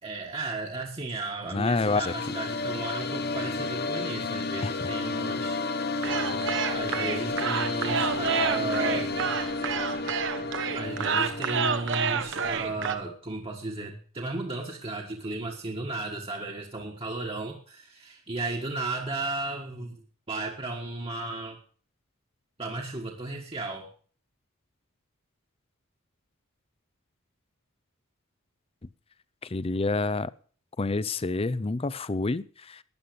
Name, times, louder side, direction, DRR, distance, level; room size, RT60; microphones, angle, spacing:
voice 1, 0.0-5.6 6.7-9.1 10.7-20.0 20.3-21.6 22.6-23.9, right 2 dB, 25° right, 0 dB, 1.5 m, -34 dB
sound 1, 1.4-11.7, left 3 dB, 50° left, 0.9 m, -32 dB
voice 2, 1.5-2.1 4.6-4.9 29.4-30.3 30.8-32.8, left 3 dB, 25° left, 18 dB, 0.5 m, -28 dB
sound 2, 6.0-12.9, right 5 dB, 60° right, 1.2 m, -29 dB
12.5 x 9.5 x 6.8 m, 0.44 s
head